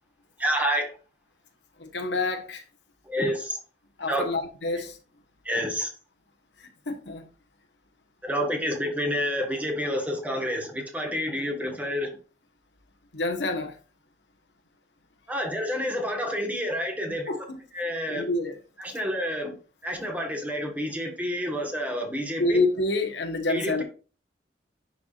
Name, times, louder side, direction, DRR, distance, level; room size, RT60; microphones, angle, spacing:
voice 1, 0.4-0.9 3.1-3.6 4.1-4.2 5.4-5.9 8.2-12.1 15.3-17.3 17.7-18.2 18.8-19.5 19.8-22.6 23.5-23.8, equal, 10° right, 1.5 m, -29 dB
voice 2, 1.8-2.6 4.0-4.9 6.9-7.2 13.1-13.7 17.3-17.6 18.1-18.6 22.4-23.8, left 2 dB, 85° left, 1.3 m, -27 dB
10.5 x 4.7 x 2.5 m
head